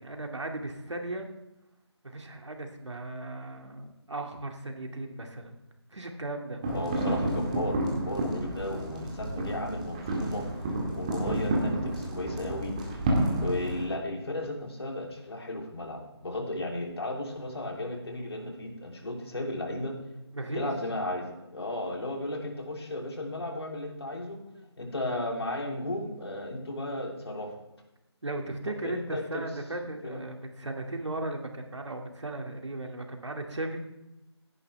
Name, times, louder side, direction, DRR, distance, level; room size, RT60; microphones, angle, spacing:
voice 1, 0.0-1.3 2.0-5.5 5.9-6.6 20.3-20.7 24.5-24.6 28.2-33.8, right 2 dB, 85° right, 3 dB, 2.4 m, -36 dB
sound 1, 6.6-13.9, right 1 dB, 15° right, 1.8 m, -30 dB
voice 2, 6.7-10.4 10.9-12.7 13.4-19.9 20.5-24.4 24.8-27.5 28.8-29.4 30.0-30.2, left 1 dB, 60° left, 1 dB, 3.2 m, -34 dB
16.0 x 11.0 x 3.4 m, 0.96 s
figure-of-eight pair, 170°, 15 cm